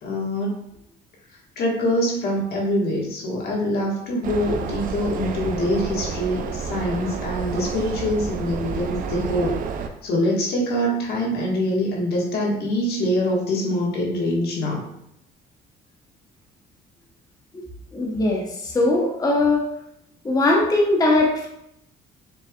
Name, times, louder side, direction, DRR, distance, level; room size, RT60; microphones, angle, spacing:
voice 1, 0.0-0.6 1.5-9.6 10.0-14.8, left 1 dB, 70° left, -3 dB, 1.6 m, -24 dB
sound 1, 4.2-9.9, right 6 dB, 55° right, 0.5 m, -30 dB
voice 2, 17.9-19.7 20.2-21.5, left 2 dB, 20° left, -1 dB, 1.0 m, -20 dB
6.8 x 3.3 x 2.4 m, 0.78 s
cardioid pair, 110°, 17 cm